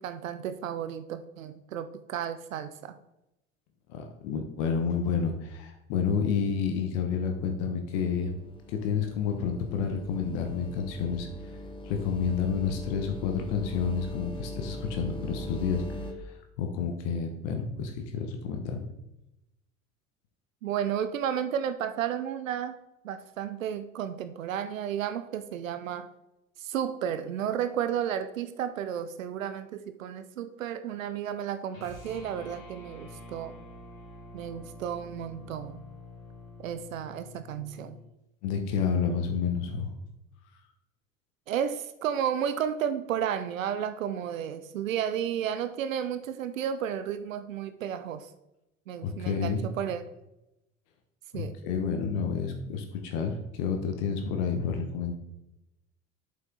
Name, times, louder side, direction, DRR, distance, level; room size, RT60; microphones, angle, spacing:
voice 1, 0.0-3.0 20.6-22.8 23.0-26.1 26.6-33.6 34.3-35.8 36.6-38.0 41.5-48.3 48.9-50.0 51.3-51.6, right 9 dB, 80° right, 11 dB, 0.5 m, -32 dB
voice 2, 3.9-8.4 8.7-11.5 11.8-18.9 38.4-39.9 49.0-49.6 51.3-55.1, left 6 dB, 60° left, 4 dB, 1.2 m, -30 dB
sound 1, 8.1-16.1, left 1 dB, 15° left, 1.0 m, -41 dB
sound 2, 31.7-38.1, left 2 dB, 90° left, 1.7 m, -47 dB
7.9 x 5.3 x 3.8 m, 0.91 s
figure-of-eight pair, 65°, 39 cm